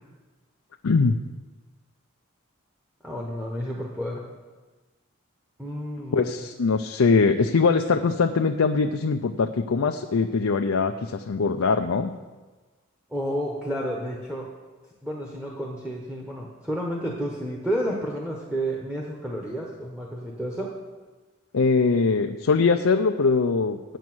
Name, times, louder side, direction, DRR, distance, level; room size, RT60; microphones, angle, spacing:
voice 1, 0.8-1.2 6.1-12.1 21.5-24.0, left 4 dB, 85° left, 4 dB, 0.5 m, -22 dB
voice 2, 3.0-4.2 5.6-6.3 13.1-14.5 15.0-20.7, equal, 5° right, -2 dB, 1.1 m, -31 dB
9.1 x 8.3 x 6.2 m, 1.3 s
head